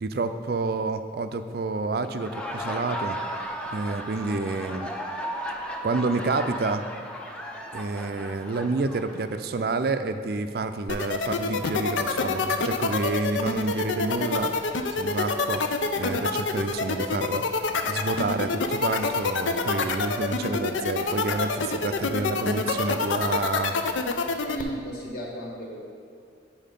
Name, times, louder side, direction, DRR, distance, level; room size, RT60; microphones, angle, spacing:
voice 1, 0.0-3.2 3.7-4.9 5.8-6.8 7.7-14.5 14.9-15.6 16.0-17.4 17.9-23.8, right 3 dB, 55° right, 10 dB, 0.4 m, -29 dB
Laughter, 2.0-9.7, equal, 5° left, 0.5 m, -35 dB
sound 1, 10.9-24.6, left 4 dB, 85° left, 0.5 m, -26 dB
voice 2, 24.4-25.9, right 1 dB, 50° left, -4 dB, 1.6 m, -35 dB
9.3 x 4.6 x 5.2 m, 2.2 s
head